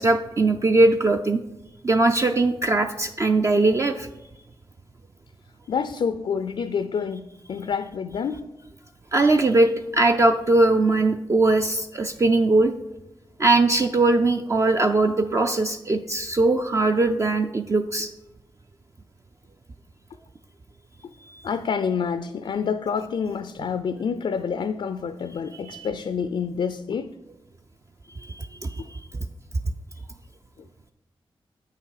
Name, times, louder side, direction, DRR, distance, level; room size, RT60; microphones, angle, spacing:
voice 1, 0.0-1.4 1.8-4.1 9.1-12.7 13.4-18.1 21.3-21.4 25.5-25.9 28.2-29.0, right 2 dB, 30° right, 6 dB, 0.4 m, -20 dB
voice 2, 5.7-8.5 21.4-27.1 28.8-28.9, left 6 dB, 65° left, 11 dB, 0.4 m, -28 dB
8.5 x 5.6 x 4.9 m, 0.96 s
cardioid pair, 80°, 10 cm